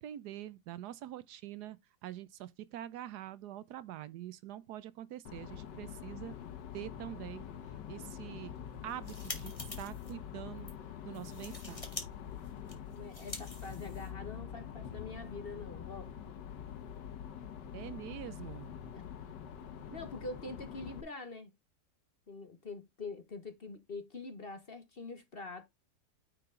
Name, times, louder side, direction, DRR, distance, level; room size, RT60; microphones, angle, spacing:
voice 1, 0.0-1.8 2.0-6.3 6.7-7.5 7.9-8.5 8.8-10.7 11.0-11.9 17.7-18.7, right 12 dB, 75° right, 1.1 m, -45 dB
sound 1, 5.3-21.0, left 9 dB, 90° left, 1.6 m, -45 dB
sound 2, 8.8-10.1 10.6-10.7 11.1-12.1 12.3-14.3, left 2 dB, 20° left, 1.8 m, -46 dB
voice 2, 12.9-16.1 18.9-19.0 19.9-21.5 22.3-25.7, left 3 dB, 40° left, 1.1 m, -44 dB
9.5 x 4.6 x 3.7 m
omnidirectional pair, 1.8 m